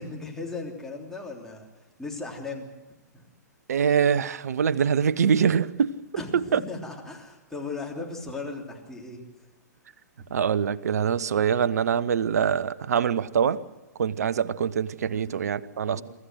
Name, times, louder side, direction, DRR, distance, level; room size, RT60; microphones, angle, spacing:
voice 1, 0.0-1.7 2.0-2.7 3.1-3.2 6.2-9.2 10.2-10.3 15.1-15.4 15.8-16.0, left 3 dB, 5° left, 3.4 m, -37 dB
voice 2, 3.7-5.9 6.3-6.6 10.3-13.6 14.0-16.0, right 7 dB, 65° right, 0.8 m, -24 dB
24.5 x 14.5 x 7.8 m
figure-of-eight pair, 115°, 9 cm